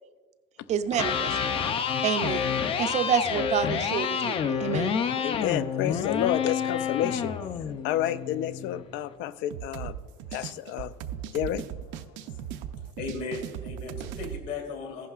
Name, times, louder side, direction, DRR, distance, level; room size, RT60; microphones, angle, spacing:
voice 1, 0.7-1.5 2.0-5.2, right 8 dB, 40° right, 11 dB, 0.4 m, -29 dB
Electric guitar, 0.8-8.9, left 7 dB, 30° left, 0.4 m, -29 dB
voice 2, 5.2-7.4 7.8-9.9 10.3-10.9 11.3-11.6, left 12 dB, 90° left, 14 dB, 0.5 m, -30 dB
sound 1, 9.5-14.4, right 10 dB, 85° right, 0.6 m, -38 dB
voice 3, 13.0-15.1, left 4 dB, 65° left, 0 dB, 2.7 m, -36 dB
15.0 x 11.0 x 2.4 m, 1.4 s
cardioid pair, 180°, 19 cm